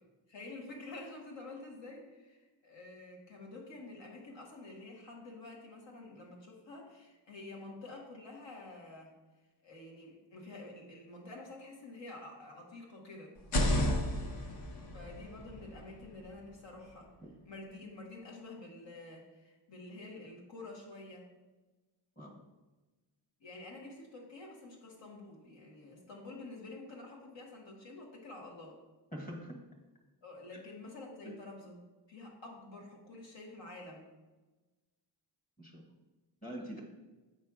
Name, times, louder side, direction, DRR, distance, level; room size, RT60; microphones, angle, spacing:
voice 1, 0.0-9.1 9.6-13.3 14.9-17.1 17.4-21.3 23.4-28.8 30.2-31.8 32.1-34.1, left 2 dB, 75° left, -1 dB, 1.8 m, -49 dB
sound 1, 13.3-17.2, left 1 dB, 60° left, 0.9 m, -34 dB
voice 2, 29.1-29.6 31.2-31.3 35.6-36.0 36.4-36.8, right 1 dB, 20° left, -1 dB, 1.3 m, -44 dB
7.9 x 3.2 x 6.1 m, 1.2 s
wide cardioid pair, 170°, 44 cm